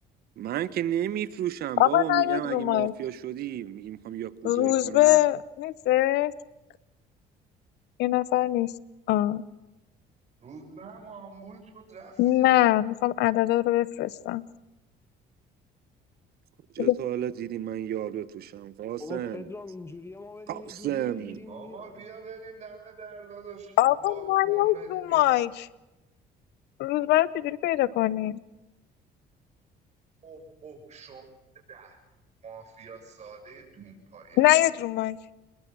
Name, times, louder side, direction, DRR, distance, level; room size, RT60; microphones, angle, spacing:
voice 1, 0.4-5.2 16.7-19.4 20.5-21.5, right 11 dB, 65° right, 1.2 m, -32 dB
voice 2, 1.8-2.9 4.4-6.3 8.0-8.7 9.1-9.4 12.2-14.4 16.8-16.9 23.8-25.7 26.8-28.4 34.4-35.2, left 15 dB, 80° left, 0.8 m, -23 dB
voice 3, 10.4-12.8 21.5-25.3 30.2-31.2 31.7-32.0 32.4-34.4, right 4 dB, 40° right, 7.6 m, -46 dB
voice 4, 19.0-22.1, left 3 dB, 15° left, 1.3 m, -42 dB
26.0 x 21.5 x 6.2 m
cardioid pair, 110°, 17 cm